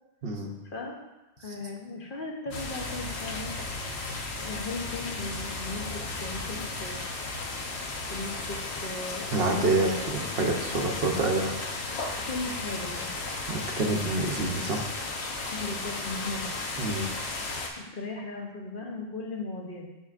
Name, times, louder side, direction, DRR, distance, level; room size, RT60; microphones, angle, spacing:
voice 1, 0.6-1.0 1.4-3.5 4.4-5.8 6.2-7.0 8.1-10.1 10.7-11.3 12.1-13.1 15.5-16.9 17.9-19.9, left 3 dB, 55° left, 0 dB, 1.0 m, -37 dB
sound 1, 2.5-17.7, left 3 dB, 85° left, 1.1 m, -35 dB
voice 2, 9.3-11.5 12.0-12.2 13.5-15.1 16.8-17.1, right 2 dB, 65° right, 1 dB, 1.0 m, -27 dB
12.0 x 4.1 x 2.5 m, 1.1 s
omnidirectional pair, 1.1 m